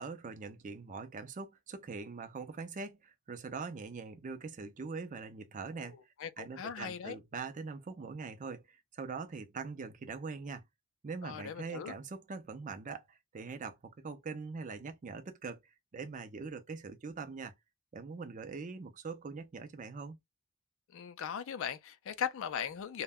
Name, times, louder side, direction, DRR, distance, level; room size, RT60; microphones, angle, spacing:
voice 1, 0.0-5.9 6.4-10.6 11.0-15.6 15.9-17.5 17.9-20.2, right 4 dB, 35° right, 0.4 m, -42 dB
voice 2, 5.7-7.2 11.2-12.0 20.9-23.0, left 8 dB, 60° left, 0.4 m, -39 dB
2.1 x 2.1 x 3.5 m
head